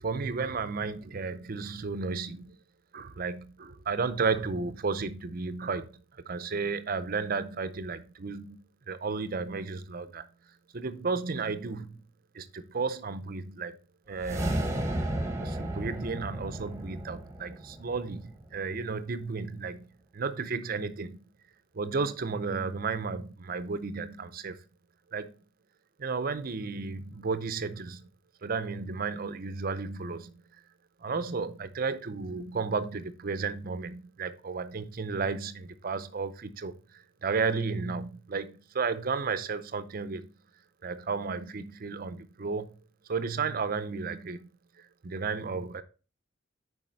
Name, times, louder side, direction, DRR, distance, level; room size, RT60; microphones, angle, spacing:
voice 1, 0.0-2.5 2.9-5.9 6.3-8.6 8.9-10.3 10.7-12.0 12.3-13.8 14.1-14.6 15.4-19.9 20.1-21.2 21.7-24.6 25.1-25.3 26.0-28.0 28.4-30.3 31.0-40.3 40.8-42.7 43.1-44.5 45.0-45.8, right 4 dB, 45° right, 0.6 m, -33 dB
sound 1, 14.1-18.5, right 1 dB, 15° right, 1.0 m, -33 dB
7.5 x 4.9 x 4.0 m
head